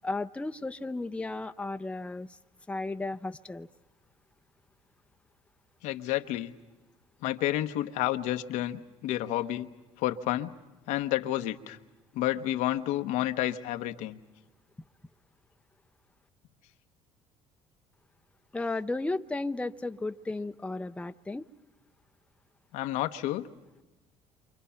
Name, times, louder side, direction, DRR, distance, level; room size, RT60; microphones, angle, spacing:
voice 1, 0.0-2.4 2.7-3.7 18.5-21.5, left 2 dB, 10° left, 9 dB, 0.7 m, -34 dB
voice 2, 5.8-6.5 7.2-9.7 10.0-10.5 10.9-11.8 12.1-14.2 22.7-23.5, left 14 dB, 80° left, 7 dB, 1.0 m, -30 dB
28.0 x 25.5 x 5.7 m, 1.1 s
supercardioid pair, 80°, 13 cm